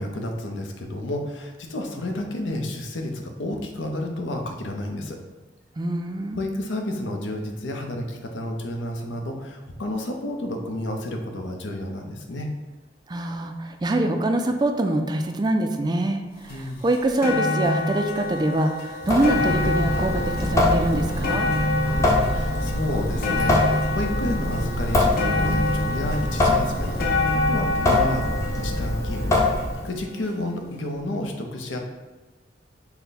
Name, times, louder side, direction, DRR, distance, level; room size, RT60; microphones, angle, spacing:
voice 1, 0.0-5.2 6.3-12.5 16.5-16.8 21.8-28.2 28.6-31.8, left 1 dB, 85° left, 3 dB, 0.7 m, -31 dB
voice 2, 5.8-6.4 13.1-16.2 16.5-21.5, right 1 dB, 25° right, 5 dB, 0.3 m, -24 dB
sound 1, 16.5-16.6 16.9-30.1 30.9-31.0, left 2 dB, 55° left, 0.8 m, -27 dB
Water tap faucet / Sink (filling or washing) / Drip, 19.0-29.9, left 2 dB, 15° left, 0.7 m, -24 dB
5.6 x 2.1 x 4.1 m, 1.2 s
head